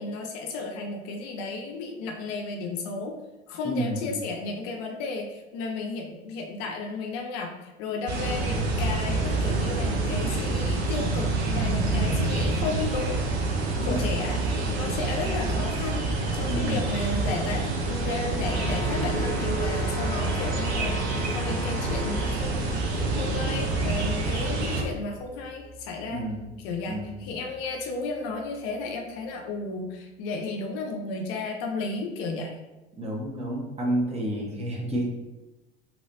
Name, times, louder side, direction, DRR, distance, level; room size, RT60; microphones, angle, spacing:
voice 1, 0.0-3.2 3.5-13.2 13.9-14.4 14.7-16.0 16.3-22.7 23.2-26.2 26.6-32.5, left 3 dB, 55° left, 3 dB, 0.5 m, -33 dB
voice 2, 3.6-4.1 13.8-14.1 16.5-16.9 26.1-26.5 26.9-27.2 33.0-35.0, right 1 dB, 20° right, -2 dB, 0.9 m, -30 dB
sound 1, 8.1-24.8, right 2 dB, 75° right, 0.7 m, -27 dB
sound 2, 17.6-29.1, right 2 dB, 55° right, 1.2 m, -40 dB
Brass instrument, 18.4-22.5, left 1 dB, 5° left, 1.0 m, -38 dB
3.0 x 2.9 x 2.6 m, 1.1 s
hypercardioid pair, 70°, 32 cm